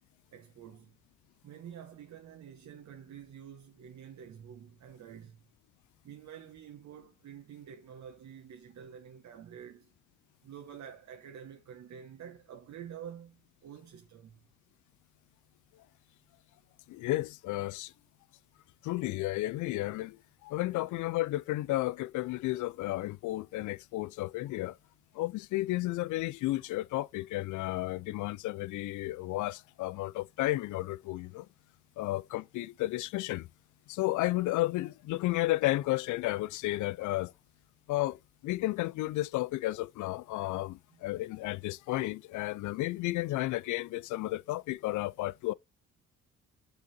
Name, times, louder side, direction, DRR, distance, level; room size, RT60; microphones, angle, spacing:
voice 1, 0.3-1.0 1.4-5.4 6.0-9.9 10.4-14.4 40.9-41.0, right 8 dB, 65° right, 1.2 m, -48 dB
voice 2, 16.9-17.9 18.8-24.8 25.1-31.5 32.0-33.5 33.9-37.3 37.9-45.5, left 18 dB, 75° left, 0.4 m, -32 dB
7.6 x 4.0 x 4.0 m
cardioid pair, 90°, 30 cm